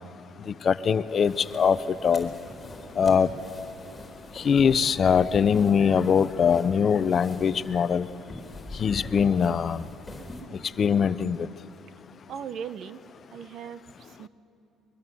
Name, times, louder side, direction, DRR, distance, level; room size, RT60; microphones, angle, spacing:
voice 1, 0.7-1.8 2.0-2.3 3.0-3.3 4.4-8.1 8.8-9.8 10.8-11.4, left 7 dB, 45° left, 15 dB, 0.6 m, -22 dB
sound 1, 1.1-10.4, left 2 dB, 20° left, 4.2 m, -43 dB
voice 2, 12.3-13.0 13.3-14.3, right 8 dB, 60° right, 14 dB, 0.9 m, -38 dB
23.5 x 22.0 x 7.7 m, 2.9 s
cardioid pair, 100°, 0 cm